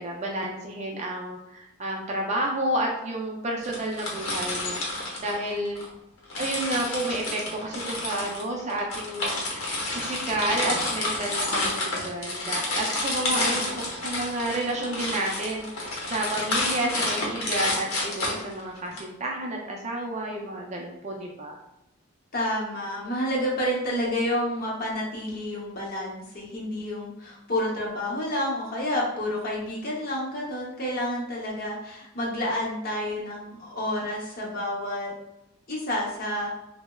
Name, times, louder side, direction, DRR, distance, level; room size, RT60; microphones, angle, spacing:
voice 1, 0.0-5.8 6.4-9.4 9.9-21.6, right 1 dB, 30° right, 0 dB, 0.3 m, -30 dB
sound 1, 3.6-5.9 6.3-19.0, left 2 dB, 80° left, 0.8 m, -30 dB
voice 2, 13.3-13.8 22.3-35.1 35.7-36.5, left 1 dB, 40° left, -4 dB, 0.7 m, -29 dB
3.2 x 2.0 x 2.2 m, 0.91 s
head